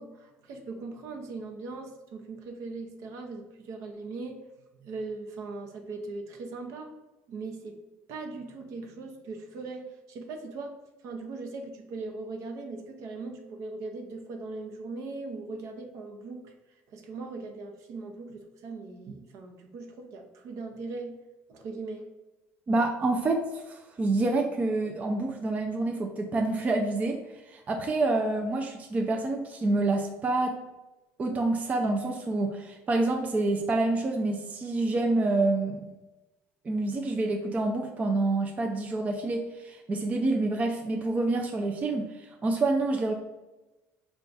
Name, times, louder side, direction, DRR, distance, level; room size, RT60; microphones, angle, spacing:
voice 1, 0.0-4.4 4.8-6.9 7.3-7.8 8.1-10.8 11.0-16.5 16.9-21.1 21.5-22.1, right 3 dB, 65° right, 3 dB, 0.7 m, -39 dB
voice 2, 22.7-30.7 31.2-35.8 36.6-43.1, right 2 dB, 25° right, 2 dB, 0.4 m, -27 dB
4.6 x 2.3 x 3.9 m, 1.1 s
cardioid pair, 130°, 6 cm